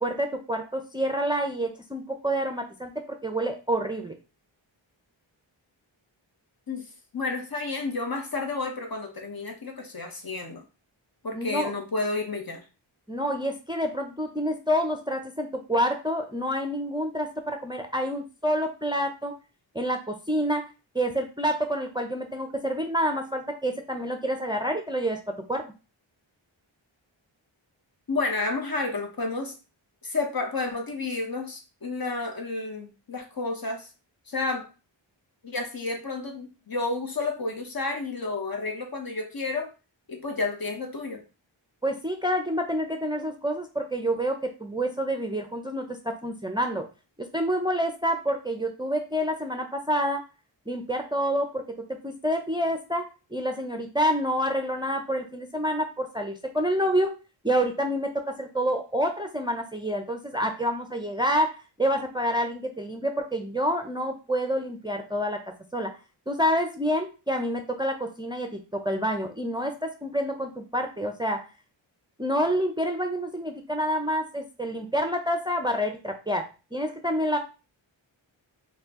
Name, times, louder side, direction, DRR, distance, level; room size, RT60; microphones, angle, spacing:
voice 1, 0.0-4.1 11.3-11.7 13.1-19.3 19.7-20.7 20.9-25.6 41.8-46.8 47.3-50.2 50.7-51.6 51.9-57.1 57.4-61.5 61.8-65.4 65.7-65.9 66.3-71.5 72.2-77.4, equal, 10° right, 4 dB, 0.6 m, -28 dB
voice 2, 7.1-10.6 11.2-12.6 28.1-29.5 30.0-33.9 34.3-34.7 35.4-39.7 40.1-41.2, left 3 dB, 45° left, 3 dB, 1.1 m, -31 dB
4.3 x 2.4 x 3.6 m, 0.32 s
wide cardioid pair, 55°, 48 cm